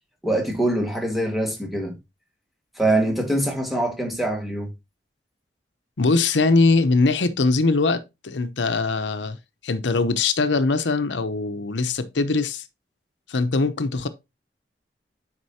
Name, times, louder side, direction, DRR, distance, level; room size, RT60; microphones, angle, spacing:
voice 1, 0.2-2.0 2.8-4.7, right 1 dB, ahead, 1.7 m, -24 dB
voice 2, 6.0-9.4 9.6-12.7 13.3-14.1, left 3 dB, 85° left, 0.8 m, -21 dB
9.6 x 5.1 x 2.8 m
head